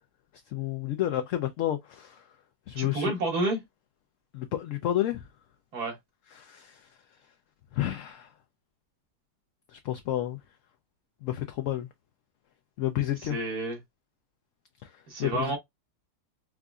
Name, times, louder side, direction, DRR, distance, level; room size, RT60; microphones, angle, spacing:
voice 1, 0.5-2.2 2.7-3.1 4.3-5.2 6.3-6.8 7.7-8.3 9.7-10.4 11.2-11.9 12.8-13.4 15.2-15.5, left 13 dB, 70° left, 0.8 m, -30 dB
voice 2, 2.8-3.6 5.7-6.0 13.3-13.8 15.1-15.6, right 2 dB, 70° right, 2.1 m, -29 dB
4.8 x 2.5 x 2.3 m
omnidirectional pair, 1.7 m